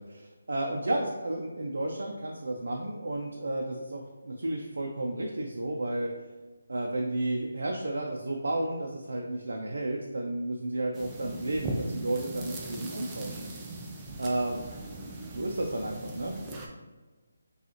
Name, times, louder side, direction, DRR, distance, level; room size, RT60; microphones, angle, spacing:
voice 1, 0.0-6.1 6.7-13.4 13.7-13.8 14.2-14.6 15.3-16.3, right 1 dB, 85° right, 0 dB, 0.5 m, -32 dB
sound 1, 10.9-16.7, right 2 dB, 10° right, 0.3 m, -39 dB
4.9 x 2.4 x 2.9 m, 1.3 s
hypercardioid pair, 170°, 0 cm